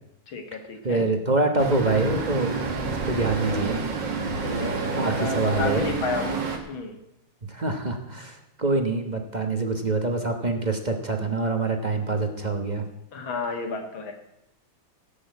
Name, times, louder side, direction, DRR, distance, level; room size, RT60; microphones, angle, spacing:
voice 1, 0.3-1.1 4.4-7.0 13.1-14.1, left 4 dB, 65° left, 5 dB, 2.5 m, -32 dB
voice 2, 0.8-2.5 3.1-3.8 4.6-4.7 4.9-5.9 7.5-12.8, right 3 dB, 30° right, 5 dB, 0.8 m, -25 dB
Traffic noise roadway noise, 1.6-6.6, right 4 dB, 55° right, 2.3 m, -29 dB
16.5 x 6.2 x 8.3 m, 0.85 s
omnidirectional pair, 2.4 m